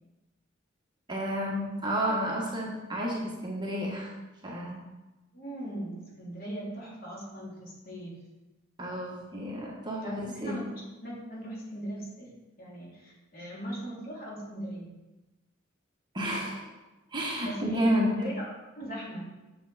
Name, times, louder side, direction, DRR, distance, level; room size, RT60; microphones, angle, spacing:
voice 1, 1.1-4.1 4.4-4.8 8.8-10.6 16.1-16.7 17.1-18.1, equal, 20° right, -3 dB, 1.5 m, -31 dB
voice 2, 5.3-8.2 10.0-12.3 12.6-14.9 17.4-19.3, right 1 dB, 45° left, -5 dB, 3.1 m, -39 dB
8.0 x 7.4 x 4.2 m, 1.1 s
head